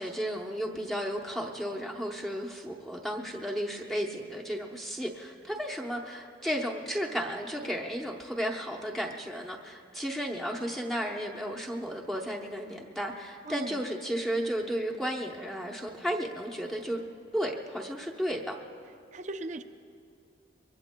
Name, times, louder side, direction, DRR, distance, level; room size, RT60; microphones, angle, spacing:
voice 1, 0.0-17.0 17.3-18.6, equal, ahead, -2 dB, 0.8 m, -33 dB
voice 2, 13.5-13.8 19.1-19.6, right 2 dB, 40° right, 8 dB, 0.5 m, -37 dB
23.5 x 23.0 x 2.2 m, 2.5 s
head